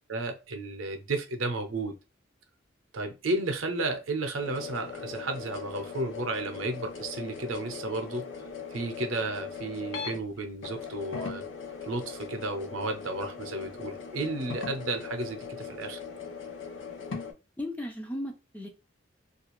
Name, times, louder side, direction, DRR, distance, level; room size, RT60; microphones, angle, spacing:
voice 1, 0.1-1.9 2.9-8.3 8.7-11.4 11.8-16.0, right 2 dB, 80° right, 0.6 m, -33 dB
sound 1, 4.4-10.2 10.6-17.3, left 6 dB, 70° left, 0.6 m, -39 dB
voice 2, 17.6-18.7, left 1 dB, 5° left, 0.4 m, -36 dB
2.4 x 2.3 x 2.9 m
head